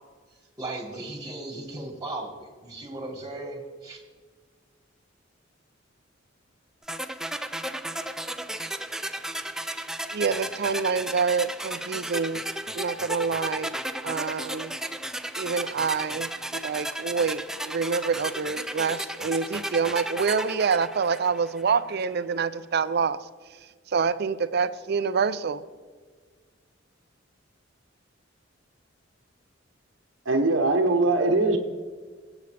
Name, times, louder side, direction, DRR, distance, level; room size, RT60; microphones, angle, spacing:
voice 1, 0.6-4.0, right 2 dB, 20° right, 1.8 m, -36 dB
sound 1, 6.9-21.8, right 1 dB, 5° right, 0.4 m, -34 dB
voice 2, 10.1-12.4 12.7-13.8 14.0-14.7 15.4-23.2 23.9-25.6, right 5 dB, 55° right, 0.5 m, -27 dB
voice 3, 30.3-31.6, right 2 dB, 75° right, 1.0 m, -21 dB
21.0 x 8.2 x 3.4 m
head